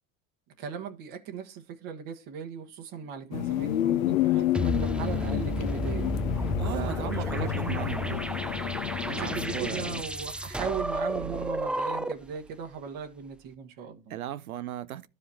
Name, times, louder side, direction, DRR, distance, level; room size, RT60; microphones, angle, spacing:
voice 1, 0.6-6.2 6.7-8.3 9.0-14.1, right 7 dB, 50° right, 1.4 m, -38 dB
sound 1, 3.3-10.0, left 12 dB, 75° left, 0.8 m, -30 dB
sound 2, 4.5-12.4, right 1 dB, 5° right, 0.4 m, -32 dB
voice 2, 6.6-8.2 9.1-10.1 14.1-15.1, right 12 dB, 90° right, 0.6 m, -36 dB
13.0 x 4.9 x 2.8 m
hypercardioid pair, 80°, 41 cm